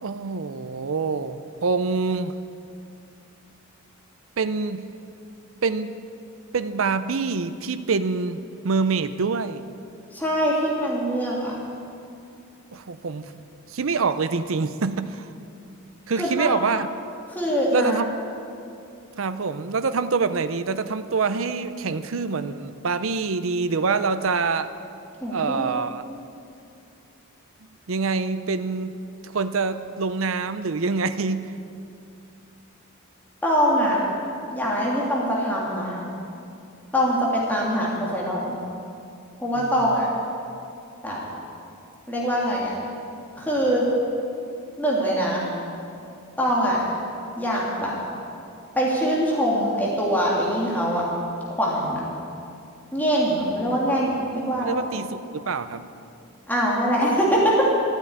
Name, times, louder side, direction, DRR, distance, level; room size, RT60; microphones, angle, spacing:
voice 1, 0.0-2.4 4.4-4.8 5.6-6.0 6.5-9.6 12.7-13.4 13.7-15.3 16.1-16.9 17.7-18.1 19.2-24.7 25.3-26.0 27.9-28.9 29.2-31.5 39.6-40.1 54.6-55.9, right 4 dB, 70° right, 11 dB, 0.6 m, -26 dB
voice 2, 10.1-11.6 16.2-16.5 17.3-18.0 25.2-25.7 33.4-34.0 34.5-36.1 36.9-38.6 39.4-40.1 41.0-41.2 42.1-42.7 43.4-43.9 44.8-45.4 46.4-46.8 47.4-48.0 48.7-51.1 51.6-52.1 52.9-54.8 56.5-57.6, equal, 10° left, -5 dB, 2.5 m, -23 dB
13.5 x 9.0 x 9.5 m, 2.6 s
head